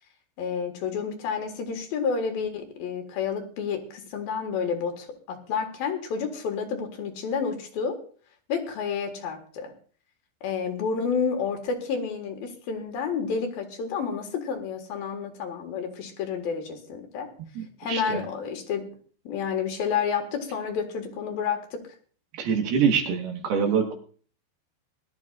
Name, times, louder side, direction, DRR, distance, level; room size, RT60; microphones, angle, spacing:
voice 1, 0.4-8.0 8.5-9.7 10.4-17.3 17.8-18.9 19.2-21.8, left 6 dB, 60° left, 5 dB, 2.8 m, -30 dB
voice 2, 17.6-18.2 22.4-23.9, right 6 dB, 65° right, 3 dB, 3.0 m, -25 dB
22.5 x 12.5 x 2.4 m, 0.43 s
omnidirectional pair, 5.5 m